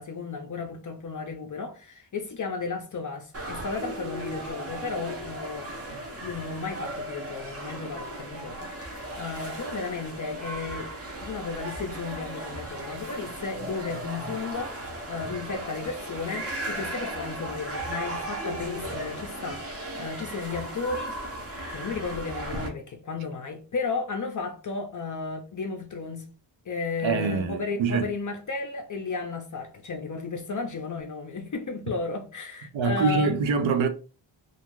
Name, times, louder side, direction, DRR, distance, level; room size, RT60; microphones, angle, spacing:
voice 1, 0.0-5.7 6.1-10.9 11.2-14.7 15.1-21.2 21.6-26.3 26.7-33.4, left 4 dB, 40° left, 0.4 m, -34 dB
sound 1, 3.3-22.7, right 1 dB, 30° right, 0.6 m, -36 dB
voice 2, 27.0-28.1 32.7-33.9, right 5 dB, 70° right, 0.6 m, -24 dB
2.5 x 2.3 x 3.0 m
wide cardioid pair, 130°, 48 cm